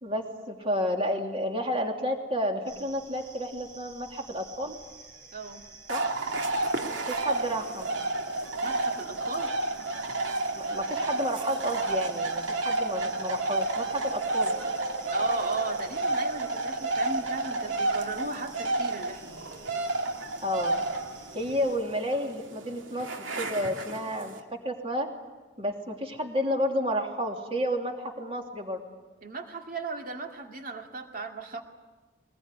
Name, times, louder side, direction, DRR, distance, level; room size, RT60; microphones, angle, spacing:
voice 1, 0.0-4.7 5.9-6.1 7.1-7.9 10.6-14.5 20.4-20.8 21.3-24.3 24.6-25.1 25.6-28.8, equal, 30° right, 2 dB, 3.1 m, -31 dB
sound 1, 2.7-21.8, right 3 dB, 65° right, 5.8 m, -49 dB
voice 2, 5.3-5.7 8.6-9.5 15.1-19.5 29.2-31.6, right 3 dB, 45° right, 4 dB, 2.4 m, -36 dB
sound 2, 5.9-24.4, right 2 dB, 80° right, 2.3 m, -31 dB
23.0 x 20.5 x 10.0 m, 1.3 s
head